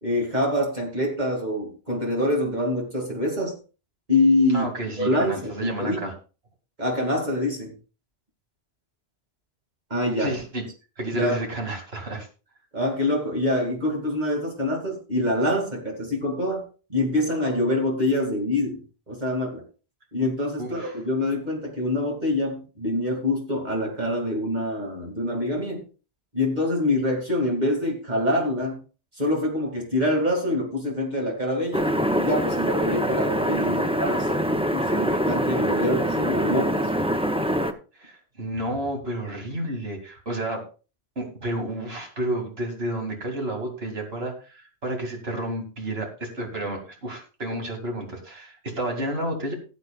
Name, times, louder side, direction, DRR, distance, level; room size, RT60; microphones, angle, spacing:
voice 1, 0.0-3.6 4.1-4.7 5.0-6.0 6.8-7.7 9.9-10.4 11.0-11.5 12.7-19.6 20.1-25.9 26.3-28.8 29.2-34.4 34.7-36.9, left 1 dB, 40° right, 0 dB, 2.5 m, -25 dB
voice 2, 4.5-6.1 10.2-10.7 11.0-12.3 20.6-21.0 38.0-40.6 41.2-49.5, right 1 dB, 65° right, 2 dB, 2.8 m, -31 dB
sound 1, 31.7-37.7, equal, 5° right, 0.5 m, -24 dB
18.0 x 8.3 x 2.4 m, 0.34 s
omnidirectional pair, 1.1 m